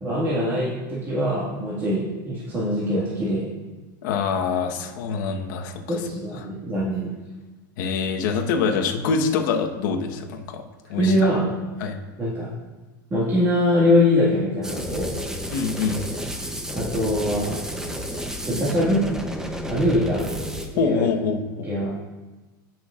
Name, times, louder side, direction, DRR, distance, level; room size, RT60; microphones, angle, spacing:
voice 1, 0.0-3.5 5.9-7.1 10.9-11.5 12.2-12.5 13.1-15.1 16.7-17.6 18.4-19.0 19.7-21.1 21.6-21.9, left 1 dB, 20° right, -8 dB, 1.9 m, -23 dB
voice 2, 4.0-6.0 6.4-6.5 7.8-10.6 10.9-11.2 11.8-12.0 15.5-16.1 20.8-21.7, left 5 dB, 65° left, 3 dB, 1.2 m, -25 dB
sound 1, 14.6-20.7, equal, 5° right, 0.8 m, -31 dB
16.0 x 6.1 x 2.5 m, 1.2 s
supercardioid pair, 140°, 11 cm